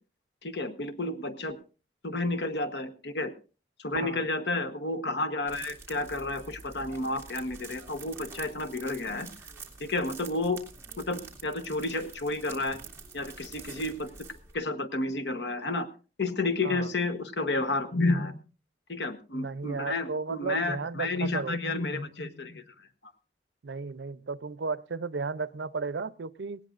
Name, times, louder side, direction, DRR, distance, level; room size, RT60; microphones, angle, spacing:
voice 1, 0.4-1.6 2.0-3.3 3.8-9.3 9.8-10.6 11.0-12.8 13.1-14.1 14.5-15.9 16.2-18.4 18.9-22.6, left 2 dB, 85° left, 10 dB, 1.1 m, -31 dB
voice 2, 3.9-4.2 16.6-16.9 19.3-21.6 23.6-26.6, right 4 dB, 90° right, 17 dB, 0.6 m, -34 dB
sound 1, 5.5-14.5, right 4 dB, 15° right, 2.5 m, -47 dB
18.5 x 18.0 x 2.5 m, 0.34 s
head